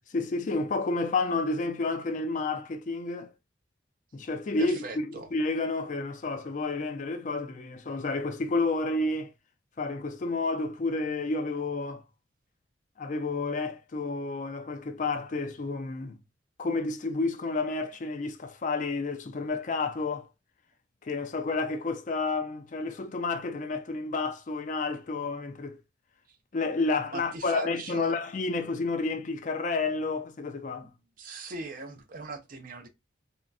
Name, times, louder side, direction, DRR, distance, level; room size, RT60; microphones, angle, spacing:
voice 1, 0.0-3.3 4.1-9.3 9.8-12.0 13.0-16.2 16.6-20.3 21.0-25.8 26.5-30.9, left 3 dB, 40° left, 0.4 m, -30 dB
voice 2, 4.6-5.3 26.3-26.4 27.1-28.1 30.8-30.9 31.2-32.9, right 3 dB, 50° right, 0.5 m, -40 dB
3.7 x 2.2 x 2.3 m
head